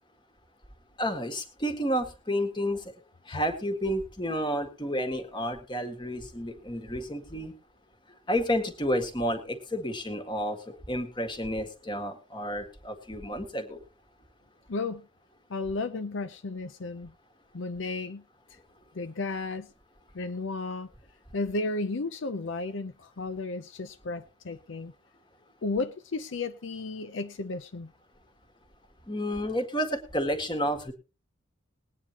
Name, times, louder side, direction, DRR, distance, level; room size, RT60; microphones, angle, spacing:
voice 1, 1.0-2.9 3.3-7.5 8.3-13.8 29.1-30.9, equal, 25° left, 1.8 m, -31 dB
voice 2, 14.7-15.1 15.5-17.1 17.5-18.2 18.5-18.6 18.9-19.7 20.1-20.9 21.3-24.9 25.6-27.9, left 3 dB, 70° left, 0.6 m, -33 dB
20.5 x 9.4 x 2.9 m
head